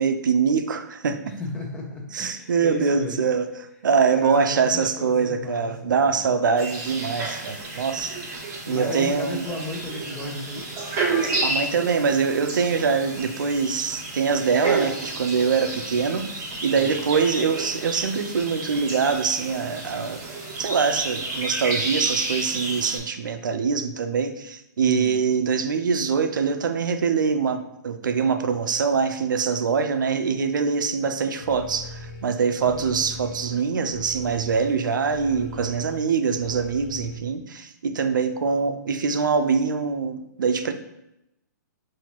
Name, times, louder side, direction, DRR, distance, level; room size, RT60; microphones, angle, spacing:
voice 1, 0.0-1.4 2.1-3.5 3.8-8.2 8.7-9.4 11.4-20.2 20.6-40.7, right 5 dB, 85° right, 9 dB, 0.4 m, -24 dB
voice 2, 1.3-3.3 4.1-6.4 8.1-8.3 8.7-10.6 16.7-17.0 24.8-25.3 32.5-32.9, left 2 dB, 10° left, -1 dB, 0.7 m, -34 dB
sound 1, 6.6-23.0, right 3 dB, 25° right, 1.2 m, -31 dB
sound 2, 31.4-37.2, left 1 dB, 45° left, 0.7 m, -40 dB
5.6 x 2.6 x 2.9 m, 0.87 s
hypercardioid pair, 155°, 10 cm